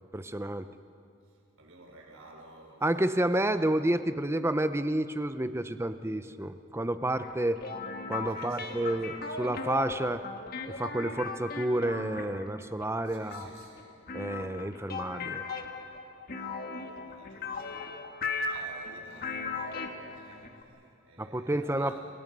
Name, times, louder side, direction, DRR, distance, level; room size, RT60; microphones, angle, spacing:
voice 1, 0.1-0.7 2.8-7.6 8.1-10.3 10.7-13.5 14.1-15.4 21.2-22.0, right 1 dB, 10° right, 10 dB, 0.7 m, -30 dB
voice 2, 1.2-3.7 8.3-9.2 13.0-14.0 14.4-14.6 15.1-15.8 16.3-22.0, right 2 dB, 80° right, 0 dB, 5.1 m, -52 dB
sound 1, 7.2-20.6, left 4 dB, 45° left, 1.7 m, -38 dB
29.0 x 23.5 x 5.5 m, 2.6 s
head